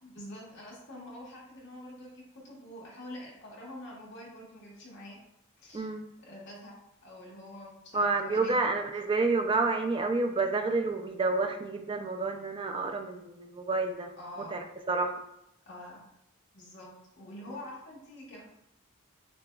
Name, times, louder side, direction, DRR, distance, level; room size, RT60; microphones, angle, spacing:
voice 1, 0.0-5.2 5.6-5.9 6.2-6.7 7.0-8.7 14.2-14.6 15.7-16.0 16.5-18.4, left 1 dB, 55° left, -4 dB, 1.2 m, -46 dB
voice 2, 7.9-14.1 14.5-15.2, right 3 dB, 25° right, 5 dB, 0.3 m, -29 dB
6.8 x 2.3 x 2.3 m, 0.80 s
head